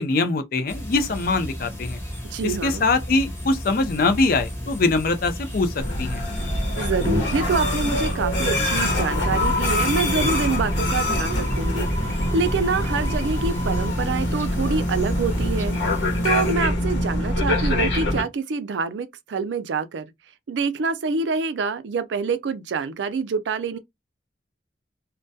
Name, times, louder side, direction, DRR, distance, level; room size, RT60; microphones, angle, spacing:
voice 1, 0.0-2.0 2.4-6.2, left 3 dB, 50° left, 0.4 m, -23 dB
sound 1, 0.7-16.5, equal, 15° left, 0.7 m, -34 dB
voice 2, 2.2-2.9 6.8-15.8 16.2-20.1 20.5-23.8, right 4 dB, 80° right, 0.4 m, -26 dB
sound 2, 5.8-18.2, left 1 dB, 85° left, 0.9 m, -24 dB
2.2 x 2.2 x 2.6 m
head